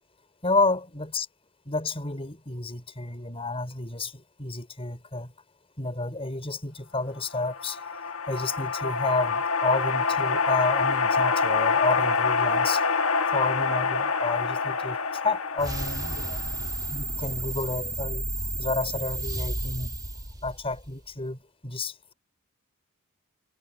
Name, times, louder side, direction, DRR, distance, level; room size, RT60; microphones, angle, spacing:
voice 1, 0.4-1.3 1.7-5.3 5.8-7.8 8.1-12.8 13.3-16.4 16.9-18.2 18.6-19.9 20.4-22.1, left 3 dB, 25° left, 5.2 m, -30 dB
sound 1, 7.3-16.9, left 5 dB, 70° left, 1.6 m, -26 dB
sound 2, 15.6-21.0, right 2 dB, 20° right, 2.9 m, -32 dB
head